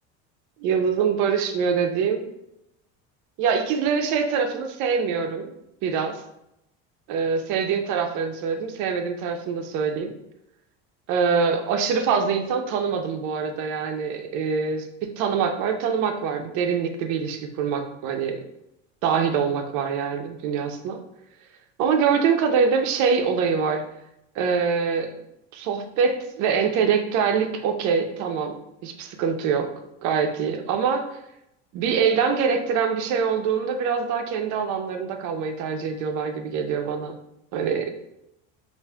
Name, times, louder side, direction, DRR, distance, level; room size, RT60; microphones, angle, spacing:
voice 1, 0.6-2.3 3.4-5.5 5.8-6.2 7.1-10.1 11.1-18.4 19.0-21.0 21.8-23.8 24.4-25.1 25.5-29.7 30.0-31.2 31.7-37.1 37.5-37.9, right 6 dB, 60° right, 5 dB, 0.6 m, -24 dB
4.7 x 2.5 x 2.2 m, 0.83 s
supercardioid pair, 125°, 34 cm